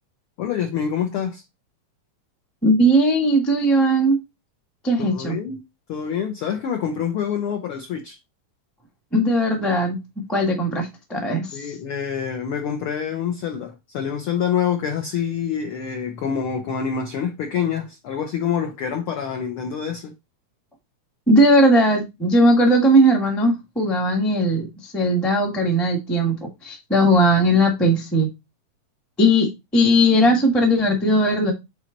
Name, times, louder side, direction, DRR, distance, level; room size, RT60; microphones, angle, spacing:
voice 1, 0.4-1.4 5.0-5.6 5.9-8.2 11.5-20.1, left 8 dB, 80° left, 1.2 m, -26 dB
voice 2, 2.6-4.2 4.8-5.4 9.1-11.7 21.3-28.3 29.2-31.5, equal, ahead, 0.3 m, -18 dB
7.9 x 3.3 x 3.9 m
omnidirectional pair, 3.5 m